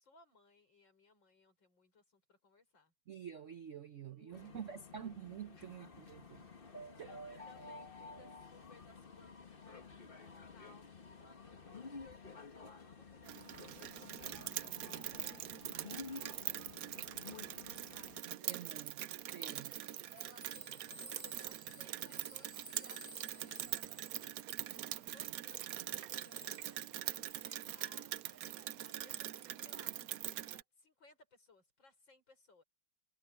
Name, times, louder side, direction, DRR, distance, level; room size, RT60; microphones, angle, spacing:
voice 1, 0.0-2.9 4.0-4.7 5.5-6.0 6.4-17.5 17.9-18.9 20.1-32.6, left 2 dB, 60° left, 6.5 m, -65 dB
voice 2, 3.1-6.2 7.0-7.1 18.3-19.8, right 8 dB, 60° right, 0.8 m, -48 dB
sound 1, 4.3-18.2, left 3 dB, 30° left, 1.5 m, -52 dB
Rain, 13.3-30.6, right 12 dB, 90° right, 0.7 m, -43 dB
sound 2, 19.4-27.5, equal, 15° left, 2.2 m, -58 dB
omnidirectional pair, 2.3 m